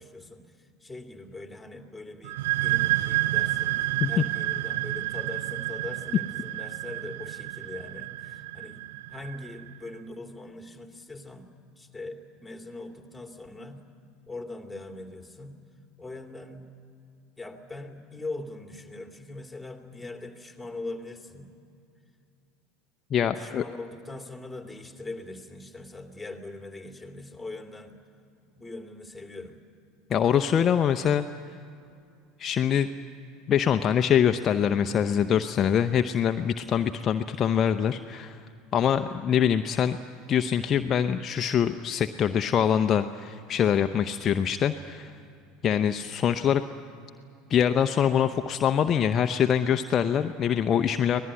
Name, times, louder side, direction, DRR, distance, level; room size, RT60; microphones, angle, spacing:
voice 1, 0.0-13.8 14.3-15.6 16.0-16.7 17.4-21.6 23.1-28.0 28.4-29.6, left 2 dB, 5° left, 3 dB, 2.7 m, -41 dB
sound 1, 2.2-9.7, right 17 dB, 70° right, 0.6 m, -30 dB
voice 2, 23.1-23.6 30.1-31.3 32.4-32.9 33.5-38.4 38.7-40.0 40.3-45.1 45.6-46.6 47.5-51.2, left 8 dB, 40° left, 7 dB, 0.7 m, -24 dB
24.5 x 18.5 x 9.7 m, 2.4 s
hypercardioid pair, 75°, 0 cm